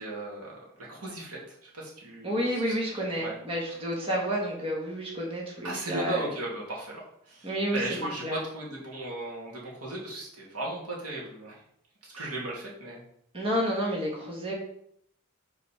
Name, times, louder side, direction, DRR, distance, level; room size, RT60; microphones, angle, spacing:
voice 1, 0.0-2.7 3.2-3.3 5.6-11.6 12.0-13.0, right 2 dB, 90° right, -4 dB, 2.5 m, -36 dB
voice 2, 2.2-6.3 7.4-7.8 8.2-8.4 13.3-14.5, equal, 25° right, -3 dB, 1.6 m, -30 dB
5.2 x 4.1 x 5.8 m, 0.71 s
head